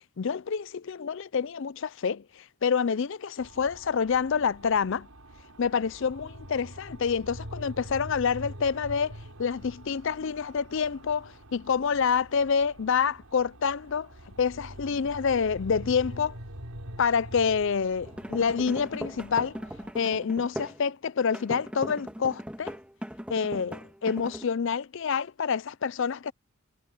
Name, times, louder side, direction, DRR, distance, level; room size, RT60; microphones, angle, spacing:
voice 1, 0.0-5.1 5.6-14.1 14.4-16.4 17.0-19.6 19.9-22.8 23.3-26.3, left 6 dB, 55° left, 0.4 m, -27 dB
sound 1, 3.4-19.9, right 1 dB, 80° right, 4.8 m, -45 dB
sound 2, 18.0-20.8 21.3-24.4, equal, 5° right, 2.0 m, -39 dB
head